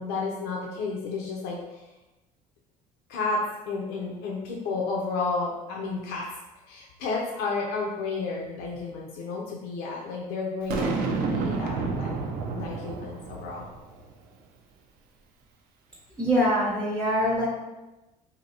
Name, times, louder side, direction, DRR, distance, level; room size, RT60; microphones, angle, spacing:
voice 1, 0.0-1.8 3.1-6.3 6.7-13.7, left 4 dB, 80° left, -2 dB, 0.6 m, -32 dB
Boom, 10.7-14.0, right 4 dB, 70° right, 0.5 m, -30 dB
voice 2, 16.2-17.5, equal, 5° left, -5 dB, 0.7 m, -23 dB
2.8 x 2.7 x 4.1 m, 1.1 s
cardioid pair, 125°, 16 cm